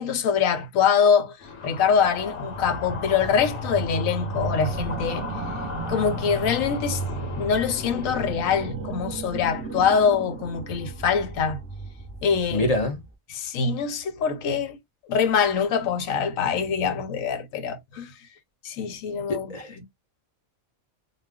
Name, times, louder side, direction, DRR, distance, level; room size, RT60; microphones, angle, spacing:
voice 1, 0.0-1.4 1.6-5.3 5.9-11.6 12.2-12.7 13.3-14.8 15.1-18.1 18.6-19.8, left 6 dB, 85° left, 1.0 m, -24 dB
sound 1, 1.4-8.3, left 4 dB, 65° left, 1.0 m, -37 dB
sound 2, 2.5-13.1, right 2 dB, 10° right, 0.9 m, -34 dB
voice 2, 12.5-13.0 19.3-19.8, left 2 dB, 45° left, 0.5 m, -26 dB
2.4 x 2.3 x 3.4 m
omnidirectional pair, 1.4 m